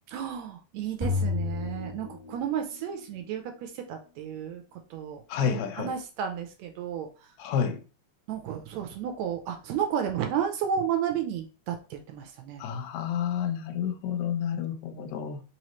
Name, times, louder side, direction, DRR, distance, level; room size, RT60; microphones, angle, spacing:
voice 1, 0.1-4.6 4.9-7.1 8.3-12.6, right 8 dB, 75° right, 1.7 m, -32 dB
sound 1, 1.0-2.8, left 4 dB, 10° right, 1.3 m, -30 dB
voice 2, 5.3-5.9 7.4-7.8 12.6-15.4, left 8 dB, 80° left, 2.0 m, -30 dB
4.8 x 3.0 x 3.0 m
omnidirectional pair, 3.4 m